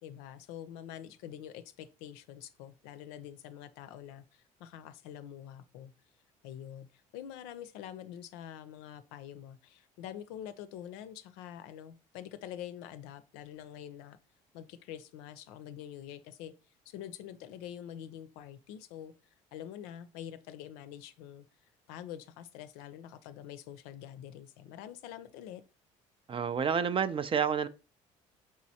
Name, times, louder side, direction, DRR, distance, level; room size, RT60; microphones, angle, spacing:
voice 1, 0.0-5.9 6.4-6.9 7.1-14.2 14.5-16.5 16.9-19.1 19.5-21.5 21.9-25.6, left 10 dB, 75° left, 0.5 m, -46 dB
voice 2, 26.3-27.7, right 7 dB, 30° right, 0.4 m, -29 dB
4.8 x 3.0 x 2.7 m
hypercardioid pair, 65°, 17 cm